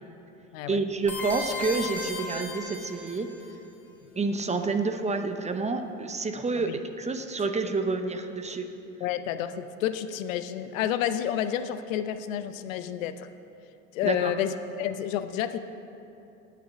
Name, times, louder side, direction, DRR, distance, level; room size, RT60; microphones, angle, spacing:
voice 1, 0.7-3.3 4.2-8.7 14.0-14.3, right 3 dB, 15° right, 7 dB, 0.6 m, -29 dB
sound 1, 1.1-3.4, left 2 dB, 5° left, 2.4 m, -35 dB
voice 2, 9.0-13.3 13.9-15.6, left 10 dB, 80° left, 11 dB, 0.6 m, -30 dB
8.7 x 5.9 x 7.2 m, 2.8 s
hypercardioid pair, 75°, 39 cm